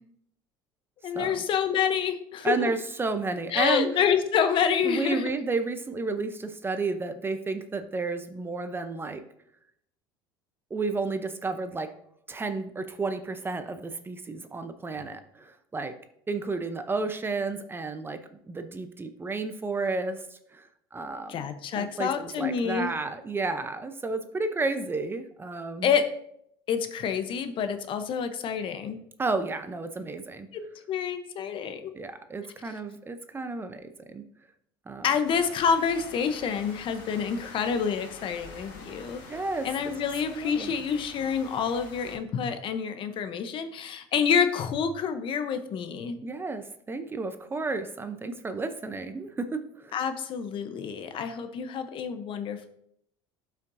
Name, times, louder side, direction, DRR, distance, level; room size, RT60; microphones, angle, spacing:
voice 1, 1.0-2.7 3.5-5.3 21.3-22.9 25.8-26.1 26.7-29.0 30.5-31.9 35.0-39.2 39.6-46.2 49.9-52.7, left 7 dB, 45° left, 9 dB, 0.9 m, -28 dB
voice 2, 2.4-3.9 4.8-9.2 10.7-11.9 12.3-16.0 16.3-18.2 18.5-21.5 21.8-25.9 29.2-30.5 31.9-34.2 34.9-35.1 39.3-39.7 40.3-40.7 46.2-50.0, right 3 dB, 20° right, 9 dB, 0.7 m, -32 dB
sound 1, 35.2-42.2, left 3 dB, 80° left, 2.2 m, -46 dB
12.0 x 5.8 x 2.7 m, 0.72 s
supercardioid pair, 95°, 12 cm